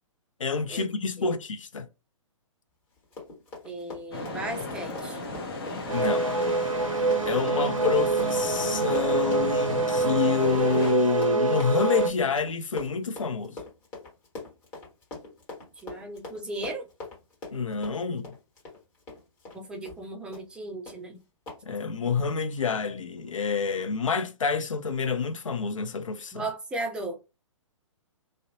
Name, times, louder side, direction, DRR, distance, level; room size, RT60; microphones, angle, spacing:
voice 1, 0.4-1.9 5.9-6.3 7.2-13.6 17.5-18.3 21.6-26.4, left 5 dB, 75° left, 0.5 m, -28 dB
Run, 3.0-19.6 19.9-20.0 20.3-20.6 20.9-21.0 21.5-21.6, left 3 dB, 25° left, 1.3 m, -42 dB
voice 2, 3.6-5.2 15.8-16.9 19.5-21.2 26.3-27.2, right 2 dB, 5° right, 0.4 m, -36 dB
sound 1, 4.1-10.9, left 2 dB, 45° left, 0.7 m, -36 dB
sound 2, 5.9-12.1, right 3 dB, 85° right, 0.5 m, -26 dB
2.5 x 2.0 x 2.6 m
figure-of-eight pair, 125°, 17 cm